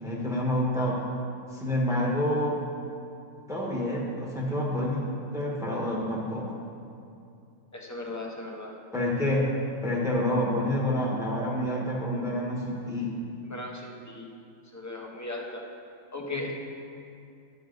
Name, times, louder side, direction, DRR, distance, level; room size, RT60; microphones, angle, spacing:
voice 1, 0.0-1.0 1.5-2.6 3.5-5.0 5.3-6.5 8.9-9.5 9.8-13.1, left 1 dB, ahead, -4 dB, 1.2 m, -28 dB
voice 2, 7.7-8.7 13.5-14.3 14.7-15.6 16.1-16.5, left 2 dB, 15° left, -1 dB, 0.8 m, -37 dB
10.5 x 7.0 x 3.9 m, 2.5 s
omnidirectional pair, 1.4 m